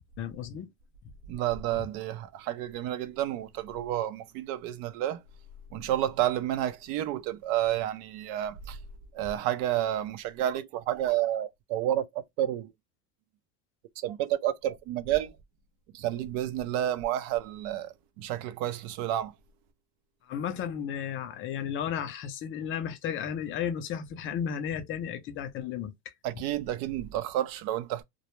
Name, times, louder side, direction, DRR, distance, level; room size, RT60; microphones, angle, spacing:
voice 1, 0.2-0.7 1.0-1.1 20.3-25.9, left 8 dB, 30° left, 0.4 m, -34 dB
voice 2, 1.3-5.2 5.7-8.8 9.1-12.7 14.0-15.3 15.9-19.3 26.2-28.0, right 12 dB, 60° right, 0.5 m, -30 dB
2.1 x 2.1 x 2.9 m
supercardioid pair, 135°, 41 cm